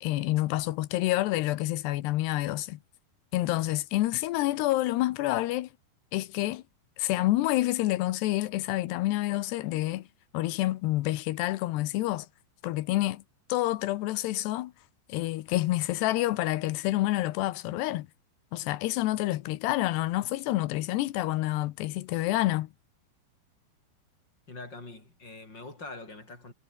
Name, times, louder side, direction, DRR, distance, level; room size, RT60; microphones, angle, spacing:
voice 1, 0.0-2.8 3.3-5.7 6.1-6.6 7.0-10.1 10.3-12.3 12.6-13.2 13.5-14.7 15.1-18.1 18.5-22.7, left 17 dB, 75° left, 2.8 m, -28 dB
voice 2, 24.5-26.5, left 2 dB, 20° left, 7.0 m, -43 dB
omnidirectional pair, 5.5 m